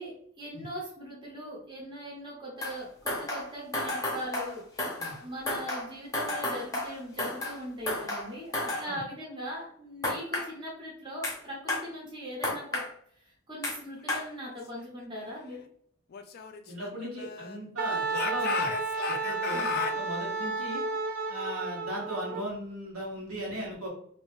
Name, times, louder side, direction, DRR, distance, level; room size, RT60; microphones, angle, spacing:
voice 1, 0.0-4.6 5.2-12.8 13.2-15.7 19.5-19.7, equal, 20° right, -4 dB, 0.9 m, -40 dB
sound 1, 2.6-2.8 3.1-5.2 5.5-7.6 7.9-8.8 10.0-10.5 11.2-11.4 11.7-11.8 12.4-12.9 13.6-13.8 14.1-14.2, left 1 dB, 15° left, 0.8 m, -32 dB
Speech / Shout, 16.1-17.7 18.1-20.0, left 6 dB, 45° left, 0.3 m, -34 dB
voice 2, 16.7-18.7 19.1-20.8 21.3-23.9, equal, 80° right, -3 dB, 1.4 m, -37 dB
Wind instrument woodwind instrument, 17.8-22.4, right 4 dB, 40° right, 0.3 m, -32 dB
2.7 x 2.7 x 3.6 m, 0.64 s
head